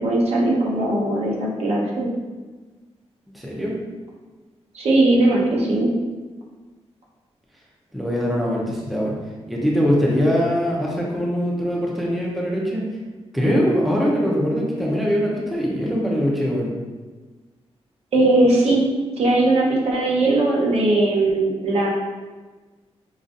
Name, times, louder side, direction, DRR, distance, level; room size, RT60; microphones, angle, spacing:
voice 1, 0.0-2.1 4.7-5.9 18.1-18.8 19.2-21.9, right 2 dB, 70° right, -3 dB, 0.9 m, -19 dB
voice 2, 3.3-3.8 7.9-9.2 9.5-12.8 13.3-16.7, equal, ahead, -4 dB, 0.5 m, -22 dB
5.2 x 2.4 x 2.5 m, 1.3 s
wide cardioid pair, 155°, 11 cm